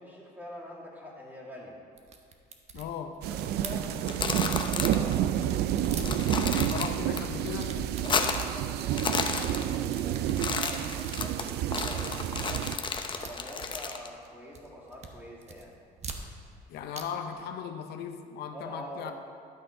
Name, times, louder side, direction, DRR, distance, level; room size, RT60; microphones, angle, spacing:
voice 1, 0.0-1.8 3.3-5.6 8.0-12.7 13.2-15.7 18.5-19.1, left 1 dB, 10° right, -4 dB, 2.3 m, -44 dB
sound 1, 2.0-5.0 5.3-6.8 7.2-8.5 8.8-9.3 9.7-14.3 14.5-15.1 15.4-16.6 16.9-17.0 17.3-17.4, right 4 dB, 40° right, 0.9 m, -43 dB
voice 2, 2.7-3.3 6.5-7.9 16.7-19.1, left 7 dB, 75° left, 6 dB, 0.6 m, -37 dB
sound 2, 3.2-12.8, right 11 dB, 75° right, 0.4 m, -30 dB
sound 3, 3.9-5.1 5.4-5.5 5.8-7.2 7.5-8.6 8.9-10.0 10.3-14.1, left 5 dB, 30° left, 0.7 m, -32 dB
11.5 x 6.2 x 4.8 m, 2.4 s
cardioid pair, 110°, 17 cm